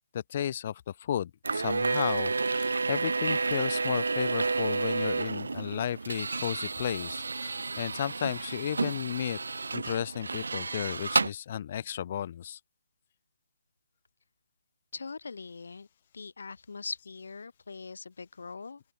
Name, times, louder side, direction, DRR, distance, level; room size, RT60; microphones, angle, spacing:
voice 1, 0.1-0.7 1.0-9.4 9.7-12.6, left 10 dB, 35° left, 0.9 m, -33 dB
sound 1, 1.4-11.3, right 4 dB, 80° right, 1.6 m, -31 dB
voice 2, 14.9-15.9 16.1-18.8, left 4 dB, 70° left, 1.5 m, -41 dB
open air
hypercardioid pair, 160°, 0 cm